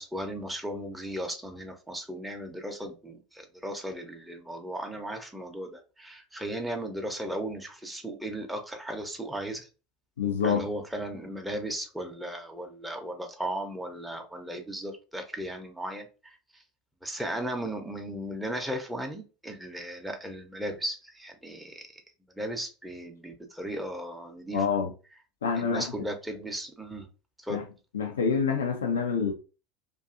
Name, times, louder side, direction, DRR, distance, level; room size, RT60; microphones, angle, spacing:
voice 1, 0.0-9.7 10.4-16.6 17.0-22.0 22.4-24.7 25.5-27.1 27.4-27.6, right 1 dB, 5° right, 0.6 m, -36 dB
voice 2, 10.2-10.7 24.5-24.9 25.4-25.9 27.5-27.6 27.9-29.3, left 6 dB, 75° left, 0.4 m, -27 dB
2.6 x 2.4 x 2.5 m
figure-of-eight pair, 75°, 0 cm